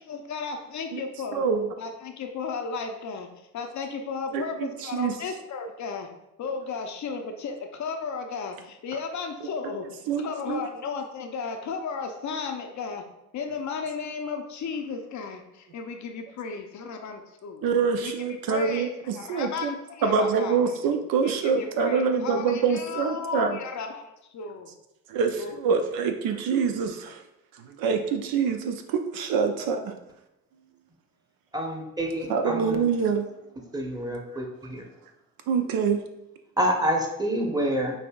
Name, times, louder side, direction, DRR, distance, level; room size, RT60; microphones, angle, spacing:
voice 1, 0.0-1.5 1.8-6.1 6.4-13.0 13.3-17.7 18.0-18.1 18.5-20.7 21.2-24.7 25.3-25.5, left 5 dB, 50° left, 4 dB, 0.6 m, -34 dB
voice 2, 1.3-1.7 4.3-5.1 9.4-9.5 10.1-10.6 17.6-19.7 20.0-23.6 25.1-27.2 27.5-29.9 32.3-33.3 35.5-36.0, right 6 dB, 65° right, 6 dB, 0.6 m, -25 dB
voice 3, 31.5-32.8 33.7-34.4 34.7-34.8 36.6-37.9, equal, 10° right, 1 dB, 1.0 m, -27 dB
5.4 x 2.6 x 2.3 m, 0.89 s
hypercardioid pair, 60°, 38 cm